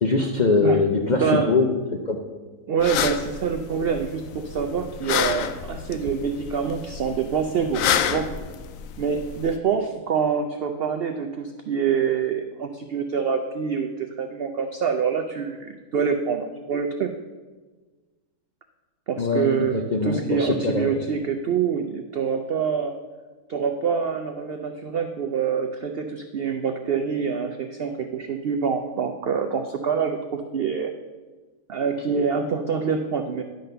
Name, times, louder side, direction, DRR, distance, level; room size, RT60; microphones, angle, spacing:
voice 1, 0.0-2.2 19.2-20.9, left 3 dB, 55° left, 2 dB, 0.5 m, -22 dB
voice 2, 1.1-1.6 2.7-8.3 9.0-17.1 19.1-23.0 23.5-30.9 31.7-33.4, right 6 dB, 70° right, 6 dB, 0.5 m, -26 dB
sound 1, 2.8-9.6, left 8 dB, 70° left, 0.9 m, -29 dB
10.5 x 3.9 x 6.6 m, 1.3 s
omnidirectional pair, 1.6 m